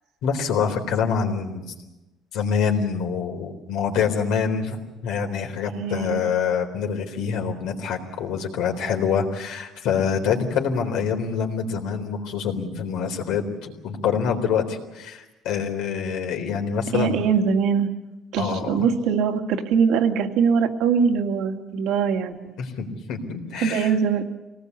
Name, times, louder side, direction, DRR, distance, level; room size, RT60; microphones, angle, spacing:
voice 1, 0.2-1.6 2.3-17.3 18.4-18.9 22.6-23.9, left 6 dB, 80° left, 3 dB, 3.9 m, -26 dB
voice 2, 5.7-6.2 16.9-17.9 18.3-22.6 23.5-24.2, right 6 dB, 80° right, 4 dB, 2.2 m, -22 dB
24.5 x 19.0 x 8.3 m, 1.0 s
cardioid pair, 145°, 0 cm